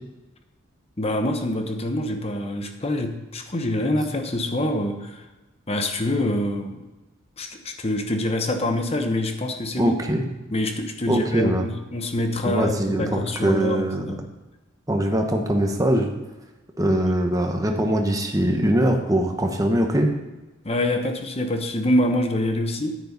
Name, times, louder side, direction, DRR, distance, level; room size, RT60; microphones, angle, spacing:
voice 1, 1.0-5.3 5.7-6.9 7.4-10.0 10.5-14.2 16.9-17.0 20.6-23.0, left 1 dB, 30° left, 6 dB, 1.0 m, -25 dB
voice 2, 9.8-10.2 11.1-11.6 12.4-14.1 14.9-16.1 16.8-20.1, right 1 dB, 15° right, 3 dB, 1.1 m, -22 dB
9.6 x 9.5 x 4.0 m, 1.1 s
head